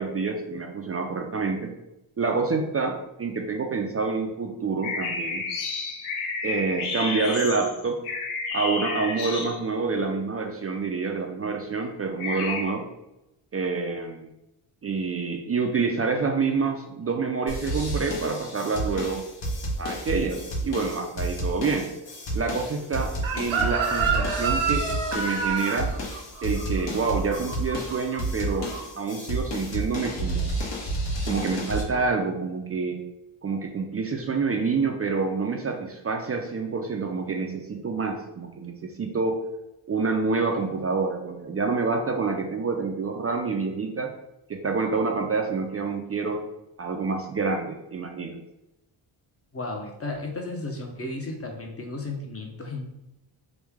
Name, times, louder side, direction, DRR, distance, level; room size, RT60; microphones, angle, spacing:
voice 1, 0.0-1.7 2.2-2.9 3.2-5.4 6.4-8.0 8.5-12.8 13.5-14.3 14.8-19.2 19.8-21.9 22.3-24.9 25.1-25.9 26.4-28.7 29.0-30.5 31.3-33.0 33.4-39.4 39.9-44.1 44.5-46.4 46.8-48.4, right 4 dB, 30° right, 3 dB, 0.4 m, -27 dB
sound 1, 4.8-9.9 12.2-12.6, left 4 dB, 85° left, 0.7 m, -31 dB
sound 2, 17.5-31.8, right 1 dB, 60° left, 1.1 m, -31 dB
Chicken rooster, 23.2-28.2 28.5-28.8, right 5 dB, 75° right, 0.8 m, -28 dB
voice 2, 49.5-52.9, left 2 dB, 30° left, 2 dB, 0.7 m, -34 dB
3.2 x 2.2 x 3.4 m, 0.89 s
cardioid pair, 75°, 48 cm